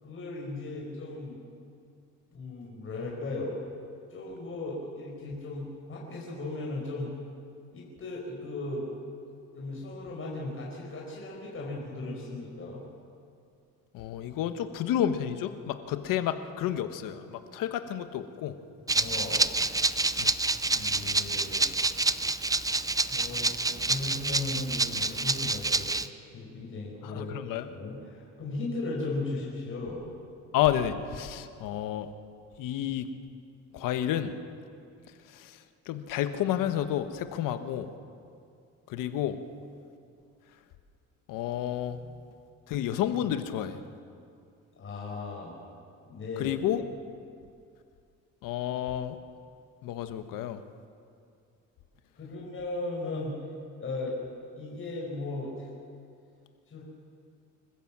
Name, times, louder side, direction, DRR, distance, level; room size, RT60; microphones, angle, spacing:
voice 1, 0.0-1.4 2.3-3.6 4.1-7.1 7.7-8.9 9.5-12.8 18.9-19.4 20.7-21.7 23.1-27.4 27.7-30.0 41.9-42.1 44.8-45.5 46.1-46.6 52.2-53.4 53.8-54.2 54.6-55.7 56.7-56.8, left 2 dB, 40° left, -3 dB, 5.1 m, -37 dB
voice 2, 13.9-18.6 20.2-20.3 27.0-27.7 30.5-32.1 32.6-33.1 33.7-34.3 35.3-35.6 35.9-37.9 38.9-39.4 41.3-42.0 42.7-43.8 46.4-46.8 48.4-49.2 49.8-50.6, left 11 dB, 80° left, 9 dB, 1.4 m, -30 dB
Rattle (instrument), 18.9-26.1, right 3 dB, 10° right, 0.6 m, -28 dB
26.0 x 15.5 x 7.5 m, 2.4 s
cardioid pair, 95°, 32 cm